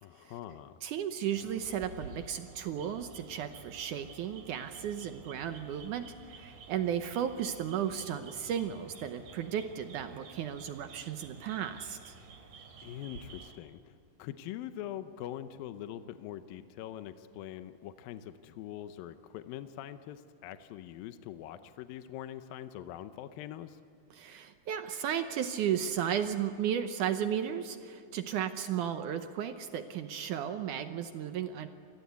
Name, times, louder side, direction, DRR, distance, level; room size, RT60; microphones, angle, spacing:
voice 1, 0.0-0.8 12.8-13.9 14.2-23.8, left 11 dB, 75° left, 10 dB, 2.4 m, -43 dB
voice 2, 0.8-12.2 24.1-31.7, right 9 dB, 75° right, 8 dB, 2.0 m, -34 dB
sound 1, 1.3-13.5, right 4 dB, 60° right, 3.5 m, -51 dB
27.0 x 20.0 x 8.3 m, 2.5 s
omnidirectional pair, 4.5 m